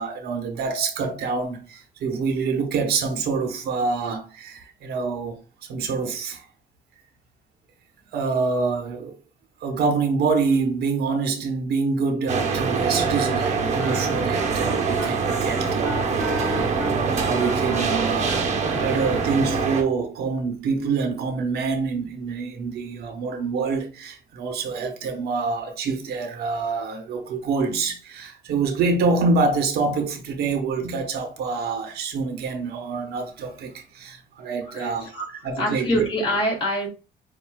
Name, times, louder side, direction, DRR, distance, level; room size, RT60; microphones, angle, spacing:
voice 1, 0.0-5.4 5.7-6.5 8.1-9.2 9.6-35.1 35.4-36.0, right 4 dB, 70° right, 1.1 m, -26 dB
sound 1, 12.3-19.8, right 5 dB, 40° right, 1.0 m, -24 dB
Wind instrument woodwind instrument, 13.7-19.5, left 1 dB, ahead, 0.5 m, -36 dB
voice 2, 34.6-35.3 35.6-36.9, equal, 30° left, 2.6 m, -25 dB
7.3 x 2.7 x 2.4 m
cardioid pair, 110°, 17 cm